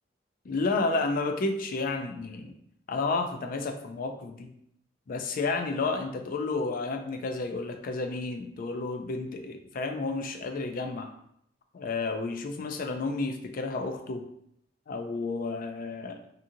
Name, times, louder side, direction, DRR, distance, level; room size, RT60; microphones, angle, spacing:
voice 1, 0.5-2.5 2.9-4.5 5.1-11.1 11.7-14.2 14.9-16.2, left 3 dB, 50° left, 6 dB, 0.4 m, -31 dB
2.8 x 2.5 x 2.6 m, 0.72 s
head